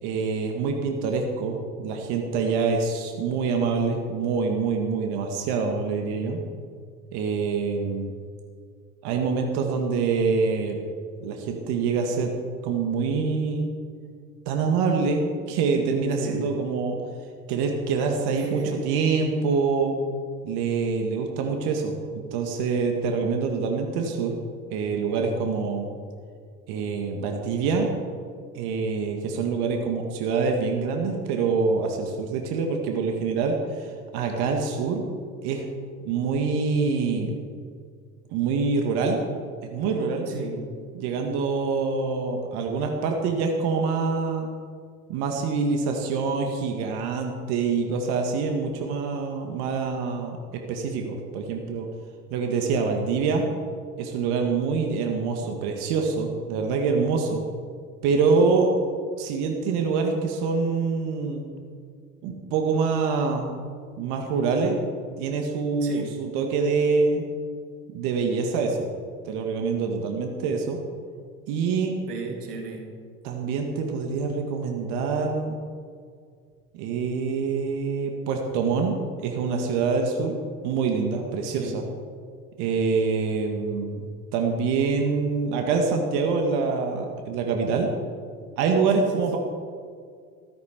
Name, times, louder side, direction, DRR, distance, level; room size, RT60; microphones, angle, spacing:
voice 1, 0.0-6.4 7.1-8.1 9.0-10.8 11.2-12.3 12.6-13.7 14.5-17.0 17.5-20.0 20.4-24.4 24.7-25.9 26.7-27.9 28.5-35.0 35.4-35.6 36.0-37.4 38.3-39.2 39.6-40.3 40.9-44.5 45.1-50.4 50.7-51.9 52.3-53.5 54.0-57.4 58.0-58.7 59.2-61.4 62.2-63.5 64.0-64.8 65.2-67.2 67.9-68.9 69.3-70.8 71.5-71.9 73.2-75.6 76.7-80.4 80.6-81.9 82.6-84.1 84.3-87.9 88.6-89.4, right 4 dB, 55° right, 2 dB, 2.0 m, -25 dB
voice 2, 40.3-40.6 65.8-66.1 72.0-72.8 81.4-81.8 88.9-89.4, right 4 dB, 80° right, 2 dB, 2.5 m, -35 dB
14.5 x 13.5 x 4.6 m, 2.1 s
hypercardioid pair, 80°, 46 cm